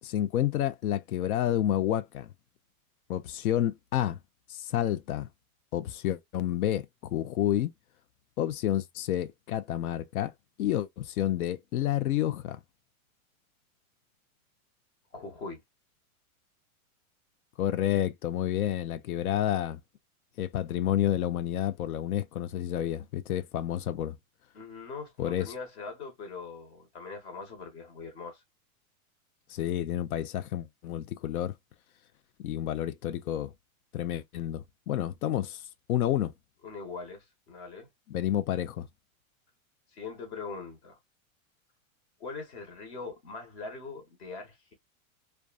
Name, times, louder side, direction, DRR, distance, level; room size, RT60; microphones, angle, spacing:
voice 1, 0.0-2.3 3.1-4.2 4.5-5.3 5.7-6.9 7.1-7.7 8.4-10.3 10.6-12.6 17.6-19.8 20.4-24.2 25.2-25.5 29.5-31.5 32.4-33.5 33.9-35.6 35.9-36.3 38.1-38.9, left 12 dB, 90° left, 0.5 m, -29 dB
voice 2, 15.1-15.6 24.5-28.4 36.6-37.9 39.9-41.0 42.2-44.7, left 4 dB, 50° left, 1.0 m, -41 dB
2.5 x 2.2 x 2.3 m
supercardioid pair, 155°, 42 cm